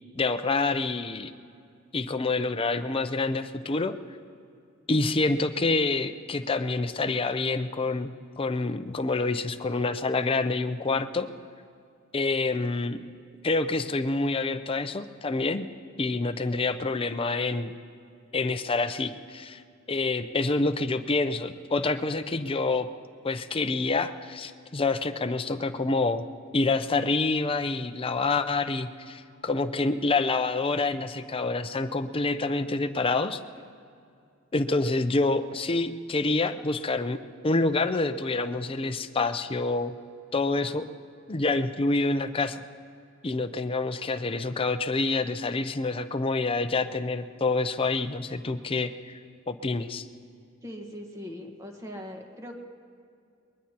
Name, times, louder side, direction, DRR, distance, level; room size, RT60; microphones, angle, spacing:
voice 1, 0.2-1.3 1.9-3.9 4.9-11.3 12.1-13.0 13.4-15.7 16.0-17.7 18.3-19.6 19.9-22.9 23.2-26.2 26.5-33.4 34.5-37.2 37.4-39.9 40.3-40.8 41.3-42.6 43.2-48.9 49.5-50.1, left 3 dB, 25° left, 9 dB, 0.6 m, -27 dB
voice 2, 50.6-52.6, left 1 dB, 15° right, 3 dB, 1.4 m, -40 dB
23.0 x 21.0 x 2.9 m, 2.4 s
head